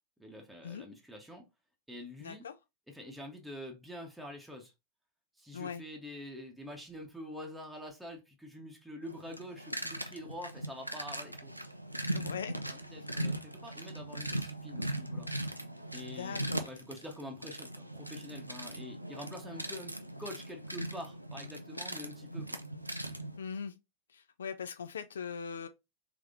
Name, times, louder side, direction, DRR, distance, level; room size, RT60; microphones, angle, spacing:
voice 1, 0.2-1.5 1.9-2.5 2.9-4.7 5.4-11.5 12.7-15.3 15.9-19.9 20.2-22.6, left 1 dB, 5° right, 0.8 m, -46 dB
voice 2, 2.2-2.5 5.5-5.8 11.9-12.6 16.1-16.7 23.4-23.7 24.1-25.7, left 6 dB, 70° left, 0.3 m, -40 dB
sound 1, 9.0-23.4, right 1 dB, 90° right, 0.4 m, -39 dB
3.5 x 3.2 x 2.5 m
figure-of-eight pair, 90°, 0 cm